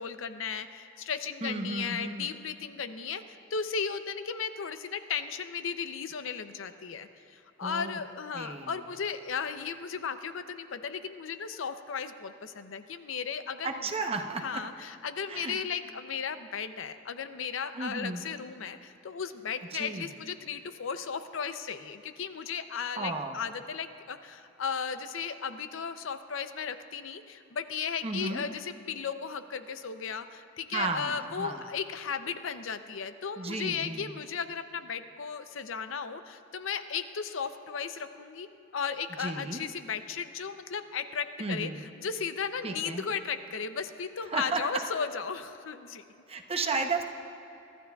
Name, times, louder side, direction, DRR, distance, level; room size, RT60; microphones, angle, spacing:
voice 1, 0.0-13.8 14.3-38.5 38.7-46.0, left 6 dB, 85° left, 10 dB, 0.6 m, -35 dB
voice 2, 1.4-2.3 7.6-8.0 8.3-8.8 13.6-14.6 15.3-15.6 17.7-18.2 19.7-20.1 23.0-23.4 28.0-28.4 30.7-31.7 33.4-34.1 39.2-39.6 41.4-41.8 42.6-43.1 44.3-44.7 46.3-47.0, right 3 dB, 30° right, 4 dB, 0.8 m, -33 dB
23.0 x 13.0 x 2.3 m, 2.9 s
head